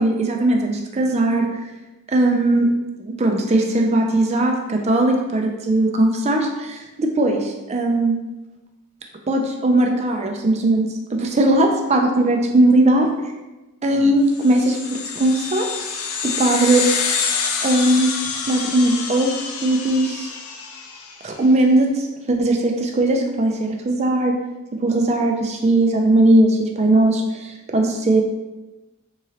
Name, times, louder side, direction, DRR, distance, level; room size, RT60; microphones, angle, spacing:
voice 1, 0.0-1.5 2.1-2.7 3.1-8.2 9.3-10.8 11.1-13.1 13.8-15.7 16.2-16.8 17.6-18.1 18.5-19.3 19.6-20.3 21.2-24.4 24.8-28.2, right 1 dB, 30° right, 2 dB, 0.4 m, -18 dB
sound 1, 14.4-21.2, left 6 dB, 70° left, 0.4 m, -27 dB
3.7 x 3.1 x 2.8 m, 1.1 s
head